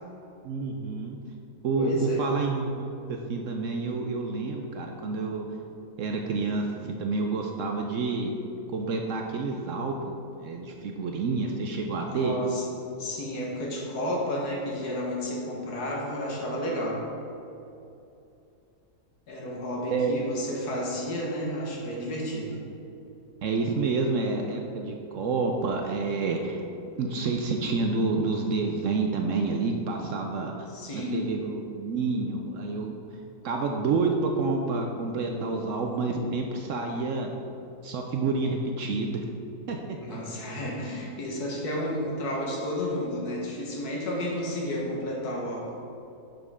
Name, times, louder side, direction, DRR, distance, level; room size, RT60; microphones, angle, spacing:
voice 1, 0.4-1.2 1.6-5.5 6.0-8.3 8.7-12.3 19.9-20.2 23.4-26.6 27.0-30.5 30.9-33.0 33.4-37.3 37.8-39.2 39.7-40.2, right 3 dB, 65° right, 2 dB, 0.8 m, -28 dB
voice 2, 1.8-2.2 12.1-12.6 13.0-17.0 19.3-22.6 30.7-31.2 40.0-45.7, equal, 75° left, -2 dB, 1.8 m, -32 dB
6.0 x 5.3 x 4.9 m, 2.7 s
omnidirectional pair, 1.7 m